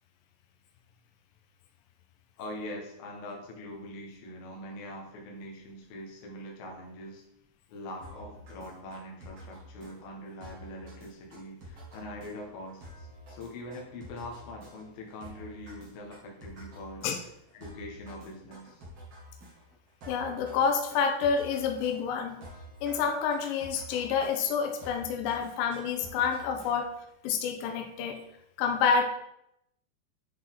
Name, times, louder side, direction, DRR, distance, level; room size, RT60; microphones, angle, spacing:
voice 1, 2.4-7.2 7.7-18.9 25.4-25.5 26.1-26.9, left 1 dB, 65° left, 0 dB, 2.8 m, -43 dB
sound 1, 8.0-27.1, equal, 50° right, 2.0 m, -49 dB
voice 2, 20.1-22.4 22.8-26.9 27.2-28.2 28.6-29.0, left 6 dB, 90° left, 3 dB, 2.0 m, -28 dB
10.0 x 4.2 x 3.6 m, 0.79 s
omnidirectional pair, 5.0 m